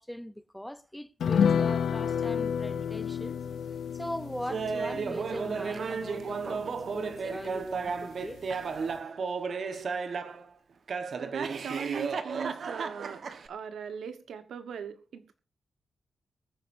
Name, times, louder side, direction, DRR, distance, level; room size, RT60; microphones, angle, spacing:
voice 1, 0.0-3.4 3.9-8.4, equal, 5° left, 0.7 m, -40 dB
sound 1, 1.2-8.0 8.3-8.4 8.7-8.9, left 7 dB, 80° left, 0.7 m, -31 dB
Laughter, 4.5-10.4 10.9-13.5, right 5 dB, 65° right, 1.3 m, -34 dB
voice 2, 11.2-13.2 13.5-15.4, right 7 dB, 85° right, 1.3 m, -39 dB
23.0 x 9.5 x 2.7 m
cardioid pair, 70°, 0 cm